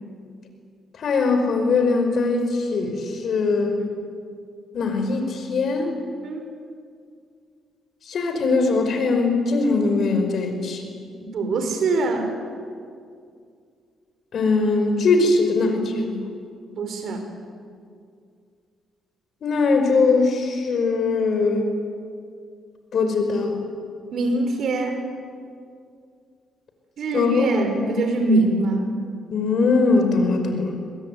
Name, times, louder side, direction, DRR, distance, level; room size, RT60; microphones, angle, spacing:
voice 1, 1.0-3.8 4.7-5.9 8.1-10.8 14.3-16.3 19.4-21.7 22.9-23.5 27.1-27.5 27.8-27.9 29.3-30.8, left 3 dB, 60° left, 6 dB, 5.3 m, -21 dB
voice 2, 11.3-12.3 16.8-17.2 24.1-25.1 27.0-29.0, right 2 dB, 65° right, 5 dB, 5.1 m, -23 dB
24.0 x 21.5 x 9.5 m, 2.2 s
cardioid pair, 90°, 0 cm